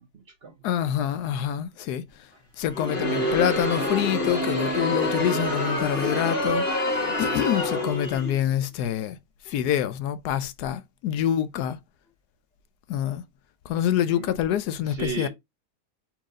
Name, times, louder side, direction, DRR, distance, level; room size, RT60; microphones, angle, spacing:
voice 1, 0.0-0.5 14.1-14.4 14.9-15.3, right 4 dB, 50° right, 0.8 m, -35 dB
voice 2, 0.6-2.3 2.6-9.2 9.5-11.8 12.9-13.2 13.6-15.3, left 10 dB, 85° left, 1.1 m, -26 dB
Crowd, 2.7-8.4, left 1 dB, 35° left, 2.0 m, -27 dB
4.4 x 2.9 x 3.6 m
omnidirectional pair, 1.7 m